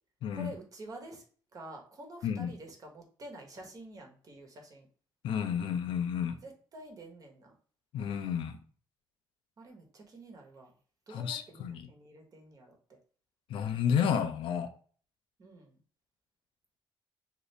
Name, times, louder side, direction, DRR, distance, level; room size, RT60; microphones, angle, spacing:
voice 1, 0.3-1.2 1.5-4.9 6.4-7.6 9.6-10.7 11.1-13.0 15.4-15.8, right 1 dB, 45° right, 1.0 m, -48 dB
voice 2, 5.2-6.4 7.9-8.6 11.1-11.8 13.5-14.7, left 8 dB, 80° left, 0.5 m, -31 dB
2.8 x 2.6 x 3.2 m
cardioid pair, 105°, 9 cm